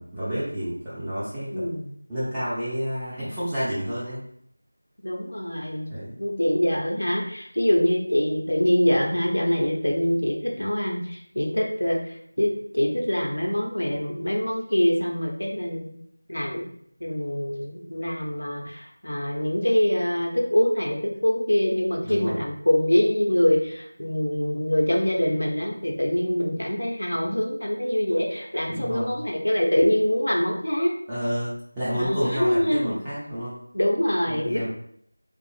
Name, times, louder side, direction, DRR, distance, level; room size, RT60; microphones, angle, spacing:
voice 1, 0.0-1.7 2.1-4.2 5.9-6.1 22.0-22.4 28.7-29.1 31.1-33.6 34.3-34.7, equal, 10° right, -13 dB, 0.5 m, -30 dB
voice 2, 1.5-1.9 5.0-5.9 6.2-15.9 16.3-16.7 17.0-30.9 31.9-33.0 33.7-34.7, left 1 dB, 85° left, -1 dB, 0.7 m, -24 dB
3.3 x 2.0 x 3.2 m, 0.68 s
figure-of-eight pair, 175°, 0 cm